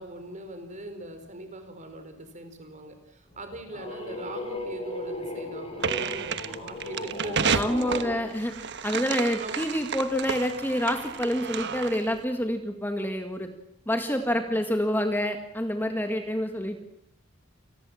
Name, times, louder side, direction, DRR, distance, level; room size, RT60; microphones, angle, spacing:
voice 1, 0.0-8.2 9.4-9.6 14.3-14.6, right 1 dB, 35° right, 7 dB, 4.5 m, -40 dB
sound 1, 3.3-8.2, left 1 dB, 25° left, 6.5 m, -37 dB
sound 2, 5.8-12.2, right 6 dB, 50° right, 1.3 m, -31 dB
voice 2, 7.5-8.5 8.8-13.5 13.9-16.8, equal, 10° left, 5 dB, 1.9 m, -27 dB
28.5 x 19.5 x 7.3 m, 0.73 s
head